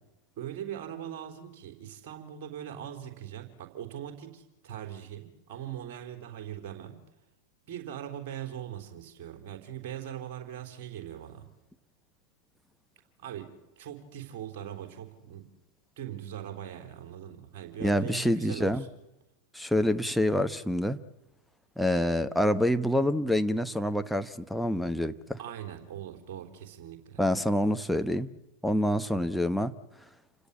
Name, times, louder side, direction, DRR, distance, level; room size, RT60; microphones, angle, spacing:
voice 1, 0.4-7.0 7.7-11.5 13.2-13.5 13.8-15.4 16.0-18.9 25.4-27.2, right 10 dB, 45° right, 6 dB, 4.0 m, -41 dB
voice 2, 17.8-18.8 19.5-21.0 21.8-25.4 27.2-28.4 28.6-29.7, equal, ahead, 7 dB, 1.0 m, -27 dB
28.5 x 16.5 x 8.7 m, 0.98 s
figure-of-eight pair, 90°, 0 cm